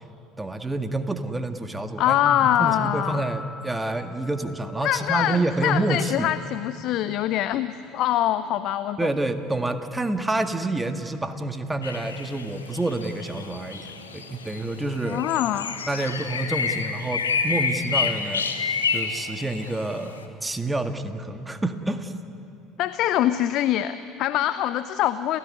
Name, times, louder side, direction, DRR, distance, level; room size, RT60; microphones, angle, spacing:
voice 1, 0.4-6.3 9.0-15.2 15.9-20.1 20.4-22.1, right 2 dB, 10° right, 7 dB, 1.9 m, -28 dB
voice 2, 2.0-3.2 4.8-9.1 15.0-15.8 22.8-25.4, left 12 dB, 55° left, 13 dB, 0.7 m, -24 dB
sound 1, 2.1-6.3 6.5-6.6, left 5 dB, 25° left, 1.6 m, -37 dB
sound 2, 11.8-20.2, left 5 dB, 80° left, 1.5 m, -29 dB
30.0 x 15.0 x 9.8 m, 2.8 s
figure-of-eight pair, 65°, 0 cm